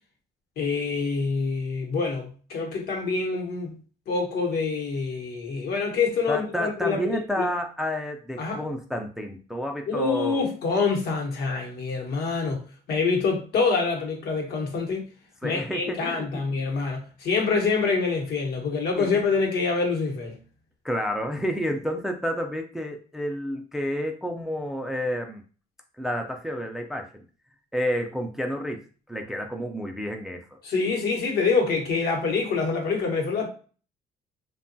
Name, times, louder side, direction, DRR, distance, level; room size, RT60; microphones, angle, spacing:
voice 1, 0.6-3.7 4.1-7.5 8.4-8.6 9.9-15.0 15.4-20.4 30.6-33.5, left 4 dB, 70° left, 1.0 m, -26 dB
voice 2, 6.3-10.4 15.4-16.3 19.0-19.1 20.8-25.4 26.0-27.2 27.7-28.8 29.1-30.5, equal, ahead, 0.3 m, -30 dB
2.8 x 2.2 x 2.6 m
cardioid pair, 110°, 17 cm